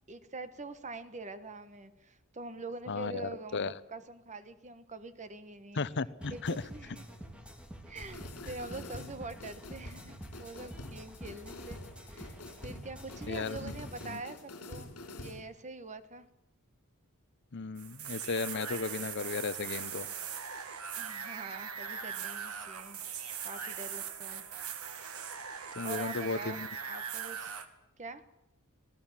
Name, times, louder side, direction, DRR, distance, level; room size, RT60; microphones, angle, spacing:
voice 1, 0.1-5.8 6.3-7.1 7.9-16.3 21.0-23.0 23.4-24.4 25.8-27.5 28.0-28.2, right 3 dB, 35° right, 12 dB, 1.4 m, -45 dB
voice 2, 2.9-3.7 5.8-6.6 13.3-13.7 14.1-14.2 17.5-20.1 25.7-26.7, left 4 dB, 55° left, 17 dB, 0.8 m, -35 dB
sound 1, 6.2-14.2, equal, 5° right, 2.5 m, -48 dB
sound 2, 8.0-15.4, left 2 dB, 75° left, 4.2 m, -46 dB
sound 3, 17.8-27.6, right 7 dB, 75° right, 1.8 m, -40 dB
26.0 x 17.5 x 7.4 m, 0.89 s
head